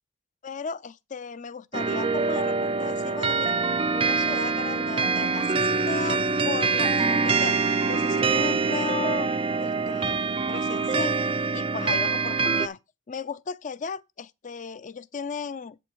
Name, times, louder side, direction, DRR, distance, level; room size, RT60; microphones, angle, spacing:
voice 1, 0.4-3.5 3.9-7.5 7.9-9.3 9.6-10.2 10.5-11.2 11.5-12.8 13.1-15.8, left 5 dB, 40° left, 0.5 m, -35 dB
sound 1, 1.7-12.7, right 4 dB, 30° right, 0.4 m, -25 dB
8.0 x 7.9 x 4.6 m
head